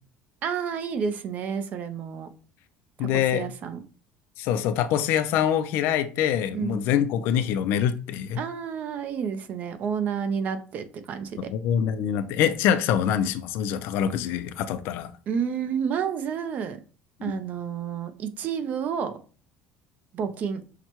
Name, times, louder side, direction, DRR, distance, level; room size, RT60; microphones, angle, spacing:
voice 1, 0.4-2.3 3.0-3.8 6.5-6.8 8.3-11.5 15.3-16.8 17.2-19.2 20.1-20.6, right 7 dB, 40° right, 0.4 m, -30 dB
voice 2, 3.0-3.5 4.4-8.4 11.4-15.1 17.2-17.3, left 9 dB, 65° left, 0.4 m, -25 dB
5.7 x 2.2 x 2.9 m
cardioid pair, 150°, 4 cm